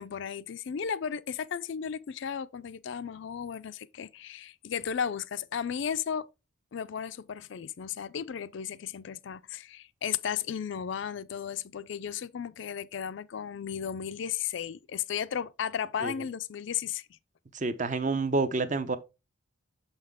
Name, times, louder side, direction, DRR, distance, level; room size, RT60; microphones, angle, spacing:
voice 1, 0.0-6.3 6.7-17.1, left 8 dB, 60° left, 0.4 m, -34 dB
voice 2, 17.5-19.0, right 3 dB, 35° right, 0.6 m, -28 dB
6.4 x 5.6 x 3.5 m
head